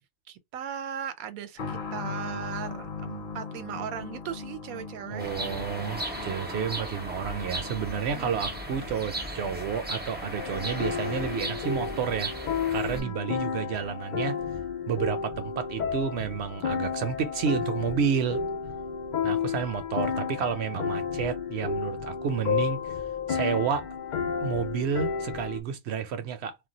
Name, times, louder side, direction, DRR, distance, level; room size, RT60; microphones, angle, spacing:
voice 1, 0.3-5.3 8.0-8.4 12.9-13.2, right 9 dB, 80° right, 1.0 m, -38 dB
sound 1, 1.6-16.0 16.3-16.4 17.3-17.4, left 4 dB, 50° left, 0.6 m, -42 dB
voice 2, 5.1-12.3 12.7-14.4 14.9-18.5 19.2-23.0 23.3-23.9 24.4-26.6, right 7 dB, 60° right, 0.7 m, -30 dB
sound 2, 5.2-13.0, right 1 dB, 15° right, 0.3 m, -36 dB
sound 3, 10.4-25.6, left 6 dB, 85° left, 0.4 m, -32 dB
2.4 x 2.2 x 3.9 m
omnidirectional pair, 1.5 m